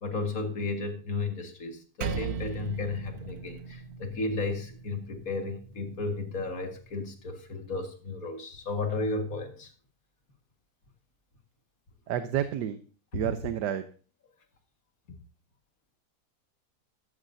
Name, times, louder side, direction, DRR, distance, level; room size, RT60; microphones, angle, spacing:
voice 1, 0.0-9.7 13.1-13.2, left 3 dB, 55° left, 4 dB, 2.3 m, -33 dB
Percussion, 2.0-6.8, right 6 dB, 65° right, 1.4 m, -39 dB
voice 2, 12.1-12.8 13.1-13.8, right 10 dB, 90° right, 10 dB, 1.4 m, -30 dB
14.0 x 12.5 x 2.7 m, 0.38 s
omnidirectional pair, 1.8 m